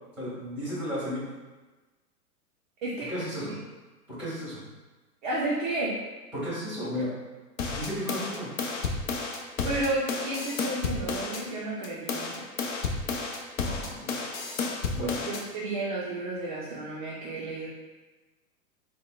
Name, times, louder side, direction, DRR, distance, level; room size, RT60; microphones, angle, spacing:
voice 1, 0.2-1.2 3.1-3.5 4.1-4.6 6.3-7.1 7.7-8.5 13.6-14.1 14.9-15.2, equal, 5° right, -9 dB, 1.4 m, -33 dB
voice 2, 5.2-5.9 9.6-12.3 15.2-17.7, right 2 dB, 35° right, -6 dB, 0.4 m, -32 dB
sound 1, 7.6-11.4 11.8-15.4, left 4 dB, 50° left, 0.5 m, -32 dB
4.1 x 2.1 x 2.2 m, 1.2 s
hypercardioid pair, 120°, 49 cm